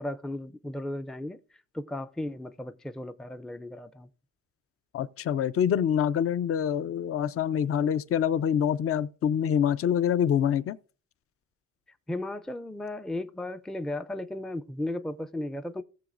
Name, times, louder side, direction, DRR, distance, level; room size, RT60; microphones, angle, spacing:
voice 1, 0.0-1.4 1.7-4.1 12.1-15.8, left 1 dB, ahead, 0.4 m, -35 dB
voice 2, 4.9-10.8, left 9 dB, 50° left, 0.6 m, -26 dB
17.0 x 7.1 x 2.5 m
cardioid pair, 90°, 30 cm